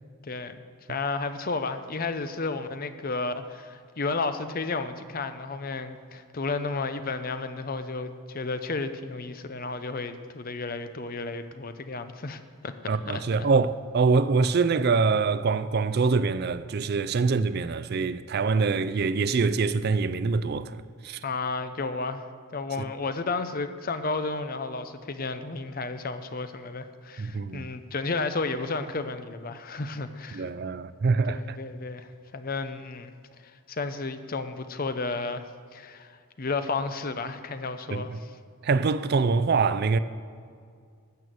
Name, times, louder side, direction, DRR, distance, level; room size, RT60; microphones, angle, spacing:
voice 1, 0.2-0.6 0.9-13.2 21.2-22.3 22.5-30.5 31.3-33.1 33.4-35.4 35.7-38.3, left 3 dB, 40° left, 0.6 m, -32 dB
voice 2, 12.9-21.2 27.2-27.7 30.3-31.6 37.9-38.2 38.6-40.0, right 4 dB, 45° right, 0.4 m, -25 dB
12.5 x 7.0 x 7.7 m
head